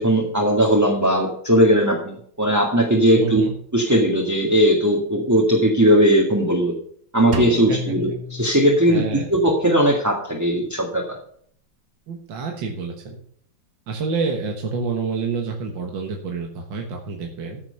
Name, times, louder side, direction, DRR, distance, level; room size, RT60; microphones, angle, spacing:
voice 1, 0.0-3.4 3.7-6.7 7.1-9.0 9.3-11.0, equal, 10° right, -1 dB, 1.8 m, -18 dB
voice 2, 3.1-3.5 7.7-7.9 8.9-9.3 12.1-13.2 13.9-17.6, right 4 dB, 75° right, 1 dB, 2.2 m, -28 dB
Drum, 7.3-9.2, left 2 dB, 30° right, 1.6 m, -31 dB
14.5 x 6.1 x 6.7 m, 0.62 s
omnidirectional pair, 2.0 m